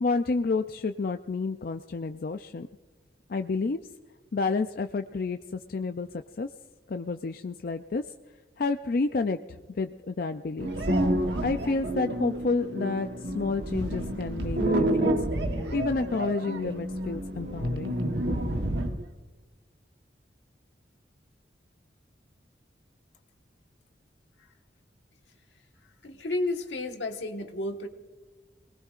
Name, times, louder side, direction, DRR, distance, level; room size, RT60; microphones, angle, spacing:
voice 1, 0.0-2.7 3.3-3.8 4.3-6.1 6.4-6.5 6.9-8.0 8.6-9.4 9.8-10.7 11.4-13.1 13.3-15.1 15.7-17.9, left 4 dB, 55° left, 7 dB, 0.4 m, -29 dB
sound 1, 10.6-19.1, right 1 dB, 75° right, 1.2 m, -29 dB
voice 2, 26.0-27.9, left 2 dB, 85° left, 4 dB, 1.5 m, -31 dB
29.5 x 19.5 x 2.5 m, 1.3 s
head